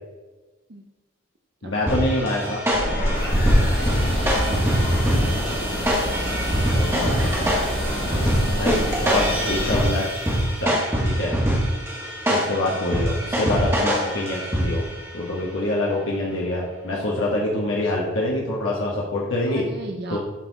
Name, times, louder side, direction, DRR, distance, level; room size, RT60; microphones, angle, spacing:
voice 1, 1.6-2.6 6.6-7.6 8.6-10.0 10.6-10.8 11.0-11.3 12.3-14.8 15.1-19.6 20.1-20.2, left 1 dB, 65° left, -5 dB, 1.5 m, -25 dB
sound 1, 1.9-15.0, equal, 10° right, 1.6 m, -24 dB
sound 2, 2.7-9.8, equal, 45° left, 1.9 m, -25 dB
sound 3, 3.1-10.8, right 2 dB, 30° right, 1.8 m, -36 dB
voice 2, 4.2-5.4 19.5-20.2, right 2 dB, 50° right, 1 dB, 0.7 m, -36 dB
12.0 x 4.3 x 4.1 m, 1.2 s
head